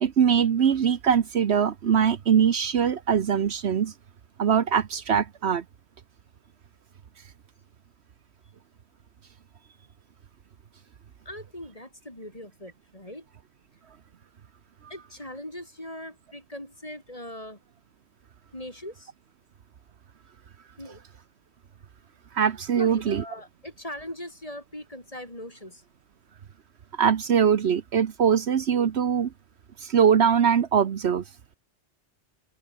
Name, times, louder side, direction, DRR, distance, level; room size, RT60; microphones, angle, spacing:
voice 1, 0.0-3.9 4.4-5.6 22.3-23.2 27.0-29.3 29.8-31.2, right 7 dB, 70° right, 1.2 m, -22 dB
voice 2, 11.2-13.3 14.9-17.6 18.5-19.1 20.8-21.0 22.7-25.8, left 1 dB, 30° left, 6.7 m, -40 dB
omnidirectional pair, 1.2 m